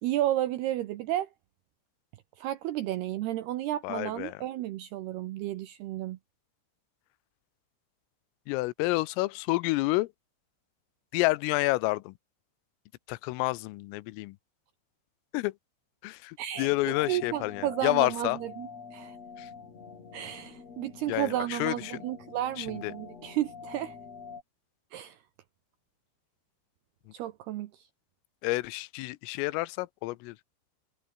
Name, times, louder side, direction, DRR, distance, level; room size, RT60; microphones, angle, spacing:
voice 1, 0.0-1.3 2.4-6.2 16.4-16.7 17.1-19.2 20.1-24.0 24.9-25.2 27.1-27.8, right 13 dB, 75° right, 2.4 m, -32 dB
voice 2, 3.8-4.4 8.5-10.1 11.1-12.1 13.1-14.4 15.3-15.6 16.0-18.4 19.4-19.5 21.1-22.1 22.6-22.9 28.4-30.4, left 21 dB, 85° left, 3.4 m, -29 dB
sound 1, 16.5-24.4, left 5 dB, 35° left, 4.0 m, -46 dB
omnidirectional pair, 5.8 m